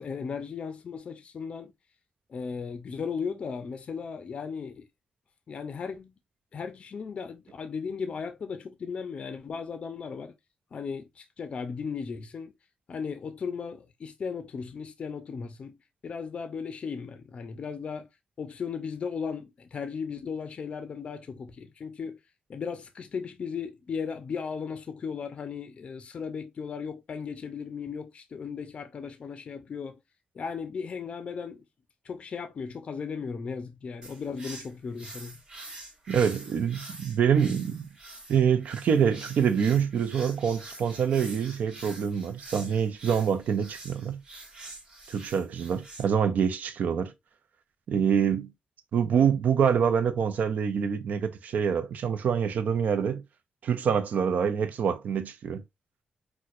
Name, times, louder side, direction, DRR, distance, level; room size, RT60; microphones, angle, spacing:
voice 1, 0.0-1.7 2.3-4.8 5.5-6.1 6.5-10.3 10.7-12.5 12.9-15.8 16.0-18.1 18.4-22.2 22.5-30.0 30.4-31.6 32.1-35.4, left 6 dB, 45° left, 0.4 m, -36 dB
sound 1, 34.0-46.0, right 2 dB, 35° right, 1.0 m, -46 dB
voice 2, 36.1-37.9 38.3-44.2 45.1-47.1 47.9-48.5 48.9-53.2 53.6-55.6, right 7 dB, 70° right, 0.4 m, -26 dB
4.3 x 2.1 x 2.4 m
wide cardioid pair, 160°, 3 cm